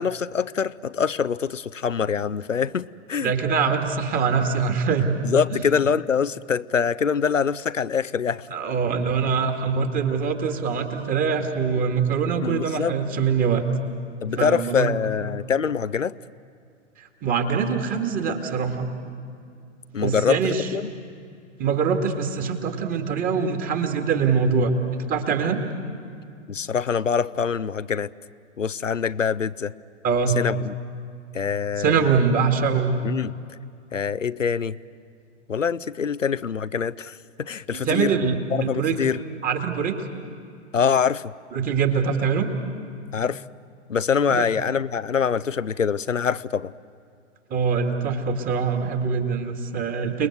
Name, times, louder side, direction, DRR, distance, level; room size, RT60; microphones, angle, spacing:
voice 1, 0.0-3.3 5.2-8.5 12.4-12.9 14.2-16.2 19.9-20.8 26.5-28.1 28.6-29.7 30.4-30.7 31.3-32.1 33.0-33.3 33.9-34.8 35.5-38.1 38.5-39.2 40.7-41.3 43.1-43.4 43.9-46.7, left 6 dB, 90° left, 15 dB, 0.6 m, -24 dB
voice 2, 3.2-5.2 5.5-5.6 8.5-13.6 14.4-14.9 17.0-19.0 20.0-20.7 21.6-25.6 30.0-30.4 31.8-33.0 37.7-39.0 39.4-40.0 41.5-42.5 44.3-44.4 47.5-50.3, right 6 dB, 25° right, 6 dB, 2.0 m, -23 dB
29.5 x 20.5 x 8.0 m, 2.4 s
figure-of-eight pair, 110°, 37 cm